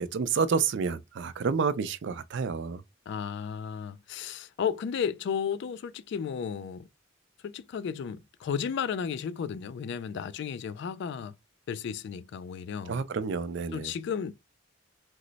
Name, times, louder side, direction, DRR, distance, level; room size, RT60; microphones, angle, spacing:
voice 1, 0.0-2.8 12.9-13.9, right 5 dB, 65° right, 0.4 m, -29 dB
voice 2, 3.1-6.9 7.4-11.3 11.7-13.0 13.7-14.3, left 7 dB, 60° left, 0.3 m, -33 dB
3.0 x 2.0 x 3.9 m
head